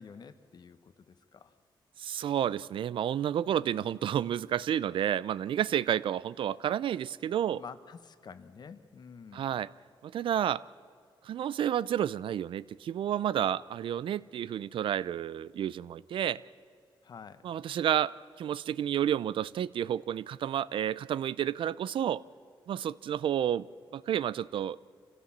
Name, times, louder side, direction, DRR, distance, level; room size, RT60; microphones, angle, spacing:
voice 1, 0.0-1.5 3.6-4.0 7.5-9.5 17.0-17.4, left 6 dB, 55° left, 11 dB, 1.1 m, -49 dB
voice 2, 2.0-7.6 9.3-9.7 10.0-10.6 11.2-16.4 17.4-22.2 22.7-23.6 23.9-24.8, right 10 dB, 75° right, 19 dB, 0.5 m, -30 dB
27.0 x 16.0 x 7.4 m, 2.2 s
cardioid pair, 115°, 9 cm